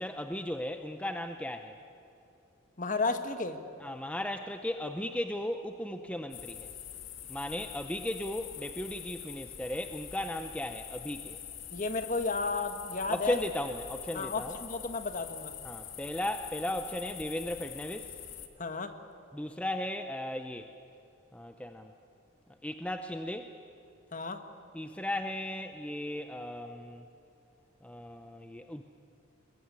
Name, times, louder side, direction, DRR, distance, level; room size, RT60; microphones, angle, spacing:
voice 1, 0.0-1.8 3.8-6.7 7.3-11.4 13.1-14.6 15.6-18.2 19.3-20.7 21.3-21.9 22.6-23.5 24.7-27.1 27.8-28.8, left 1 dB, 5° left, 7 dB, 0.6 m, -36 dB
voice 2, 2.8-3.6 11.7-13.4 14.1-15.5 18.6-18.9 24.1-24.4, left 3 dB, 35° left, 8 dB, 1.4 m, -33 dB
sound 1, 6.3-18.5, left 9 dB, 60° left, 1.7 m, -45 dB
22.0 x 20.5 x 9.6 m, 2.8 s
head